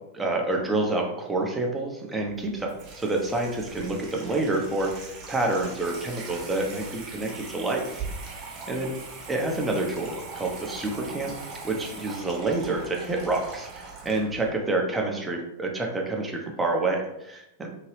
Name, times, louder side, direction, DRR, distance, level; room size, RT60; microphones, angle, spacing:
voice 1, 0.1-8.0 8.7-8.9 9.3-11.4 11.6-17.8, right 2 dB, 15° right, 0 dB, 0.7 m, -28 dB
Water tap faucet / Sink (filling or washing), 2.3-14.5, right 4 dB, 40° right, 0.9 m, -41 dB
2.9 x 2.7 x 3.1 m, 0.84 s
figure-of-eight pair, 95°, 0 cm